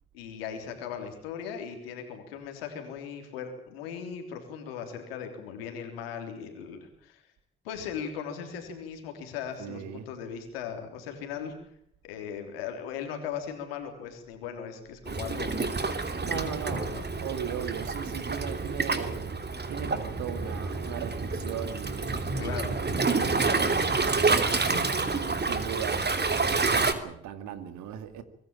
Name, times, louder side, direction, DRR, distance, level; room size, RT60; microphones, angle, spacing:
voice 1, 0.1-7.2 7.6-11.5 12.0-15.5 16.3-17.0 22.4-22.7, left 7 dB, 90° left, 3.5 m, -38 dB
voice 2, 9.6-10.1 16.2-16.9 17.2-19.4 19.7-24.6 25.0-28.2, right 9 dB, 75° right, 2.2 m, -38 dB
Waves surf, 15.1-26.9, right 3 dB, 35° right, 2.9 m, -28 dB
24.5 x 16.5 x 8.9 m
hypercardioid pair, 40°, 29 cm